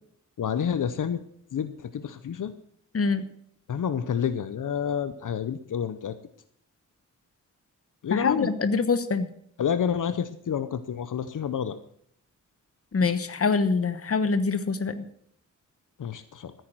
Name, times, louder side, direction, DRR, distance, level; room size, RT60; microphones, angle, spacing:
voice 1, 0.4-1.2 1.5-2.5 3.7-6.2 8.0-8.5 9.6-11.8 16.0-16.5, left 8 dB, 75° left, 12 dB, 0.8 m, -29 dB
voice 2, 2.9-3.2 8.1-9.3 12.9-15.0, left 4 dB, 50° left, 12 dB, 1.1 m, -24 dB
15.0 x 9.2 x 6.0 m, 0.66 s
wide cardioid pair, 125°, 31 cm